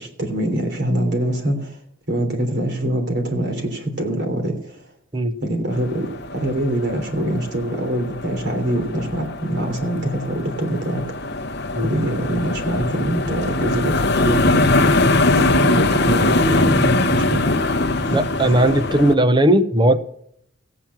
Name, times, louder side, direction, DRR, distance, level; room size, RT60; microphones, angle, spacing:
voice 1, 0.0-1.7 2.1-4.8 5.4-11.0 11.8-14.8 15.4-17.6 18.1-18.2, right 1 dB, 55° right, 3.3 m, -24 dB
sound 1, 5.7-19.1, left 2 dB, 55° left, 0.8 m, -21 dB
voice 2, 18.1-20.0, right 1 dB, 20° right, 0.8 m, -17 dB
15.5 x 9.0 x 5.8 m
head